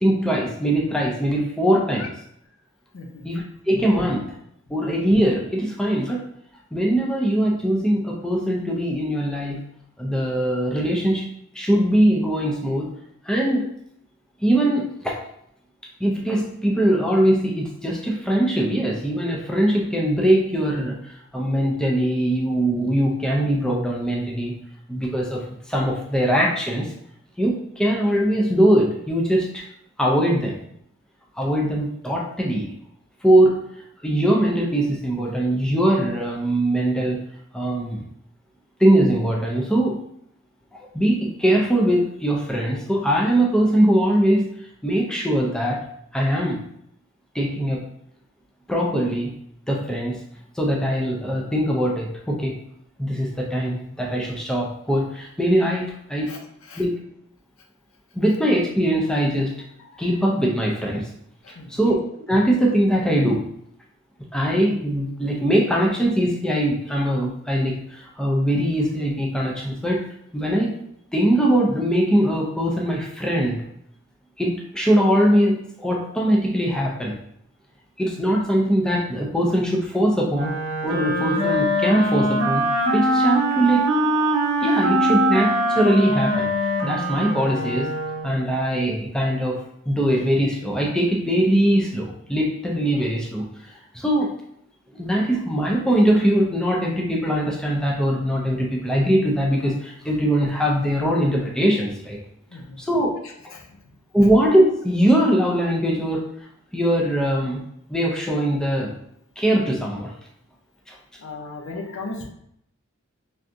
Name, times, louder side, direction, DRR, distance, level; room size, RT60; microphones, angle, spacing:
voice 1, 0.0-2.1 3.2-4.3 4.7-6.2 6.7-9.6 10.0-11.3 11.5-12.9 13.2-13.7 14.4-15.2 16.0-24.6 24.9-26.9 27.4-29.6 30.0-30.5 31.4-32.6 33.2-33.6 34.0-37.2 37.5-38.0 38.8-40.0 40.9-44.4 44.8-45.8 46.1-46.6 47.3-47.8 48.7-49.3 49.7-50.2 50.6-52.6 53.0-56.3 56.8-57.0 58.1-59.5 60.0-61.1 61.7-62.0 62.3-63.4 64.3-70.1 70.3-70.7 71.1-73.6 74.4-77.2 78.0-80.5 80.8-82.6 82.9-83.9 84.6-86.5 86.8-87.9 88.2-94.3 94.9-102.2 102.8-103.1 104.1-106.3 106.7-107.6 107.9-108.9 109.4-110.1 110.9-111.0, right 1 dB, 5° left, -3 dB, 0.4 m, -21 dB
voice 2, 2.9-3.3 56.3-56.4 56.7-56.8 59.8-60.0 61.4-61.7 102.5-102.8 103.5-103.7 111.2-112.3, left 3 dB, 75° left, 2 dB, 0.6 m, -36 dB
Wind instrument woodwind instrument, 80.3-88.4, equal, 60° right, 0.7 m, -22 dB
3.4 x 2.7 x 2.5 m, 0.72 s
head